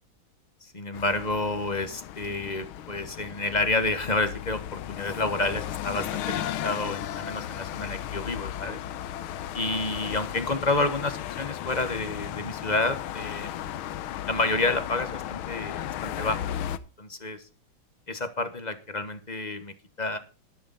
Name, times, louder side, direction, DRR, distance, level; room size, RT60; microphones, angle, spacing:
voice 1, 0.6-8.8 9.5-13.5 14.3-16.5 17.0-17.4 18.1-20.2, left 2 dB, 25° left, 9 dB, 1.1 m, -29 dB
sound 1, 0.9-16.8, left 11 dB, 75° left, 1.6 m, -35 dB
12.0 x 12.0 x 4.1 m, 0.35 s
omnidirectional pair, 2.4 m